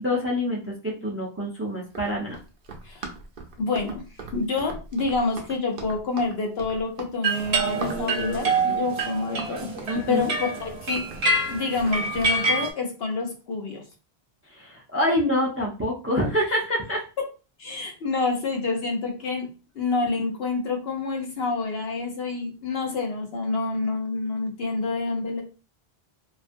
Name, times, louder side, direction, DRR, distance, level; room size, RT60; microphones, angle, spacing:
voice 1, 0.0-2.4 9.9-10.2 14.5-17.0, left 1 dB, 25° right, -2 dB, 0.3 m, -26 dB
Run, 1.8-12.4, right 3 dB, 60° right, 0.7 m, -40 dB
voice 2, 3.6-4.0 4.3-9.7 10.1-11.0 11.5-13.8 17.6-19.5 19.8-25.4, left 3 dB, 75° left, 2 dB, 0.9 m, -28 dB
sound 1, 7.2-12.7, right 2 dB, 85° right, 1.0 m, -26 dB
2.4 x 2.3 x 2.5 m, 0.33 s
omnidirectional pair, 1.1 m